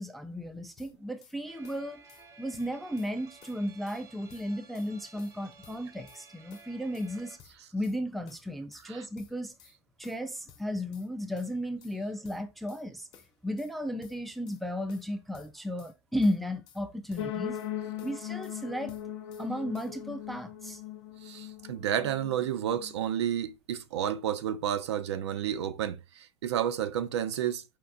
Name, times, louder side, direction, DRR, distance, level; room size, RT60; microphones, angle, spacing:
voice 1, 0.0-2.0 2.4-7.4 7.7-9.5 10.0-13.1 13.4-17.6 18.0-19.0 19.4-20.8, equal, ahead, 0.3 m, -34 dB
sound 1, 0.8-1.4 1.6-2.3 2.5-3.1 3.4-4.0 4.3-4.9 5.2-6.2 6.5-7.1 7.4-8.0 8.3-8.9 9.2-9.8 10.0-11.1 11.4-12.0 12.2-12.8 13.1-13.7 14.0-14.6 14.9-15.9 16.2-16.8 17.1-17.7 18.0-18.6 18.9-19.5 19.7-20.0, left 8 dB, 30° left, 0.8 m, -57 dB
sound 2, 1.5-7.4, right 5 dB, 20° right, 0.7 m, -55 dB
sound 3, 17.2-23.1, left 10 dB, 65° left, 0.6 m, -39 dB
voice 2, 21.2-27.6, right 10 dB, 75° right, 0.5 m, -31 dB
4.5 x 2.5 x 3.6 m
hypercardioid pair, 135°, 14 cm